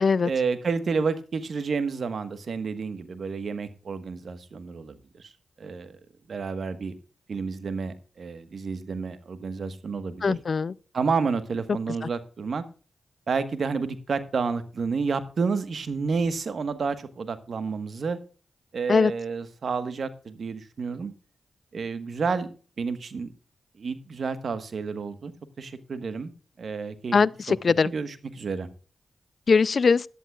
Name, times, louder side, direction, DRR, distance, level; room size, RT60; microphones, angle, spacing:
voice 1, 0.2-5.3 5.6-6.0 6.3-7.0 7.3-10.4 10.9-12.6 13.3-18.2 18.7-21.1 21.7-22.5 22.8-23.3 23.8-25.3 25.6-26.3 26.6-27.2 27.5-27.6 27.8-28.7, right 5 dB, 65° right, 1.3 m, -30 dB
voice 2, 10.2-10.7 18.9-19.1 27.1-27.9 29.5-30.0, left 5 dB, 60° left, 0.4 m, -21 dB
17.0 x 11.0 x 2.4 m
supercardioid pair, 45°, 0 cm